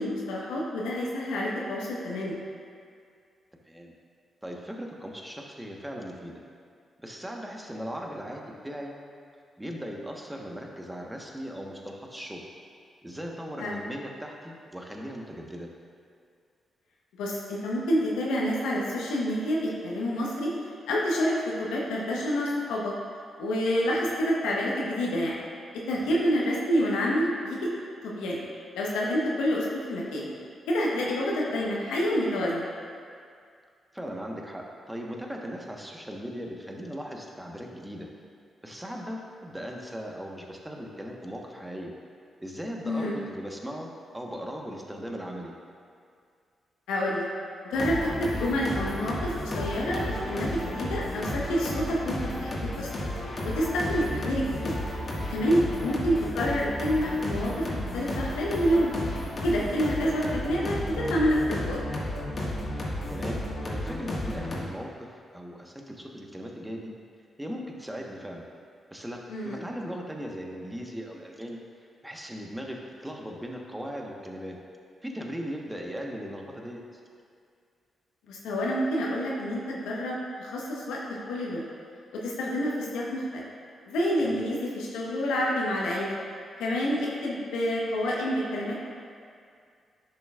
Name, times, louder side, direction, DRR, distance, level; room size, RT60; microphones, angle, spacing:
voice 1, 0.0-2.3 13.6-13.8 17.2-20.5 20.9-22.9 23.4-25.4 25.9-27.7 28.0-28.4 28.7-30.3 30.7-32.7 42.8-43.1 46.9-47.3 47.7-52.9 53.4-54.7 55.3-58.9 59.4-61.8 69.3-69.6 78.3-81.6 82.1-83.4 83.9-86.2 86.6-88.8, equal, 80° left, -4 dB, 1.1 m, -28 dB
voice 2, 4.4-6.4 7.0-8.9 9.6-12.4 13.0-15.7 25.9-26.1 33.9-38.1 38.6-41.9 42.4-45.5 55.6-55.8 63.1-66.9 67.4-68.5 68.9-71.6 72.0-74.6 75.0-76.8 84.2-84.4, equal, 10° right, 0 dB, 1.3 m, -38 dB
sound 1, 47.7-64.6, left 1 dB, 50° left, 1.8 m, -33 dB
10.5 x 6.4 x 2.5 m, 2.3 s
hypercardioid pair, 40°, 0 cm